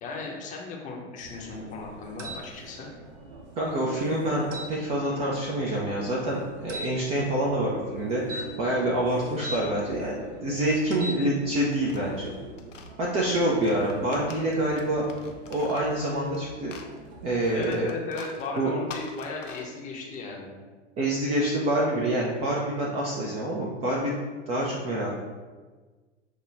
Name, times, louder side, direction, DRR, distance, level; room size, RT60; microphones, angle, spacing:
voice 1, 0.0-2.9 17.5-20.5, left 4 dB, 20° left, -1 dB, 0.7 m, -36 dB
sound 1, 1.2-17.6, right 3 dB, 60° right, 1.0 m, -47 dB
sound 2, 2.2-2.4 4.5-4.7 6.7-6.9 8.2-9.6 10.9-11.2, right 1 dB, 80° right, 0.7 m, -37 dB
voice 2, 3.6-12.3 13.0-15.1 15.5-16.8 17.2-17.9 18.6-18.7 21.0-24.2 24.5-25.1, right 1 dB, 20° right, -3 dB, 0.4 m, -27 dB
sound 3, 11.4-12.9 13.5-16.4 16.7-20.2, left 4 dB, 85° left, 0.6 m, -45 dB
6.3 x 2.2 x 3.2 m, 1.4 s
figure-of-eight pair, 95°, 37 cm